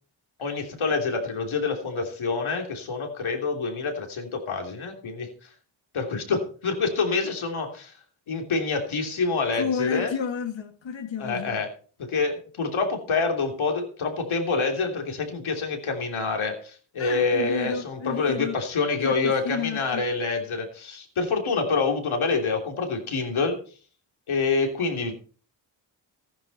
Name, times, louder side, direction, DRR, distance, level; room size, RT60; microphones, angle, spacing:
voice 1, 0.4-5.5 5.9-8.0 8.3-10.1 11.2-11.7 12.0-23.6 24.3-25.1, left 4 dB, 80° left, 3.2 m, -27 dB
voice 2, 9.5-11.6 17.0-18.6 19.0-20.0, left 6 dB, 65° left, 1.8 m, -31 dB
15.0 x 10.5 x 4.2 m
cardioid pair, 70°, 48 cm